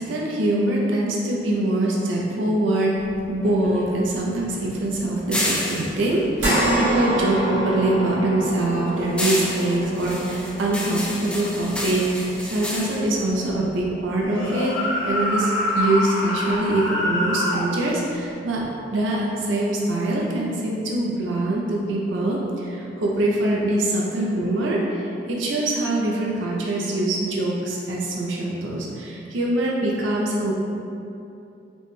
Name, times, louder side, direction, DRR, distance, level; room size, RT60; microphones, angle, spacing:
voice 1, 0.0-3.0 3.3-18.6 18.9-30.5, right 1 dB, 90° right, -3 dB, 0.5 m, -24 dB
sound 1, 2.9-7.5 7.8-14.2, left 1 dB, 5° left, 0.4 m, -31 dB
sound 2, 6.4-15.0 15.4-15.6 17.0-17.1, right 1 dB, 65° right, 1.0 m, -28 dB
sound 3, 14.2-17.7, left 1 dB, 85° left, 0.8 m, -25 dB
4.1 x 2.2 x 3.1 m, 2.7 s
head